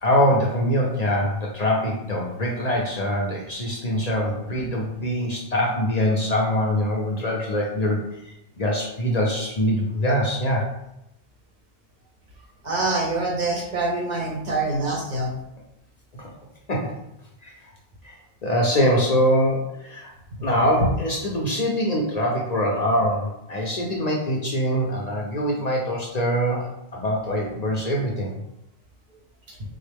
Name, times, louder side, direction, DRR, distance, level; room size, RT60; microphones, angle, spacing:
voice 1, 0.0-8.0 8.6-10.7 16.2-16.3 16.7-16.9 17.4-17.5 18.0-20.1 20.4-26.7 26.9-28.3, equal, 50° left, -2 dB, 0.6 m, -23 dB
voice 2, 12.6-15.3 29.5-29.6, right 2 dB, 50° right, -2 dB, 0.7 m, -25 dB
3.7 x 2.1 x 3.3 m, 0.85 s
omnidirectional pair, 1.0 m